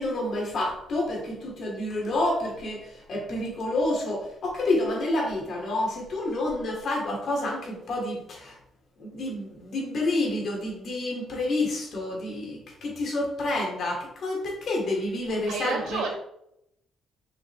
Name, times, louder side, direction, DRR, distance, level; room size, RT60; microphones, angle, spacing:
voice 1, 0.0-8.6 9.0-16.0, left 2 dB, 60° left, -1 dB, 2.6 m, -29 dB
voice 2, 15.3-16.1, right 4 dB, 80° right, -1 dB, 2.0 m, -31 dB
5.7 x 5.4 x 3.4 m, 0.77 s
cardioid pair, 90°, 0 cm